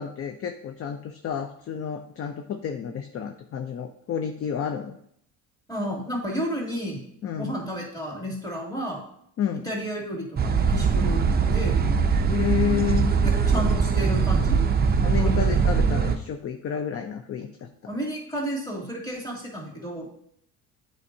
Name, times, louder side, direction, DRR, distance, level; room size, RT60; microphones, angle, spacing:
voice 1, 0.0-5.0 7.2-7.5 9.4-9.7 12.3-13.1 13.5-13.6 15.0-17.9, left 8 dB, 30° left, 6 dB, 0.5 m, -30 dB
voice 2, 5.7-9.1 9.6-11.8 13.2-14.6 15.1-15.6 17.9-20.1, equal, 10° left, -3 dB, 2.4 m, -32 dB
sound 1, 10.4-16.2, right 5 dB, 20° right, 0.5 m, -21 dB
8.2 x 4.5 x 2.7 m, 0.70 s
supercardioid pair, 85°, 45 cm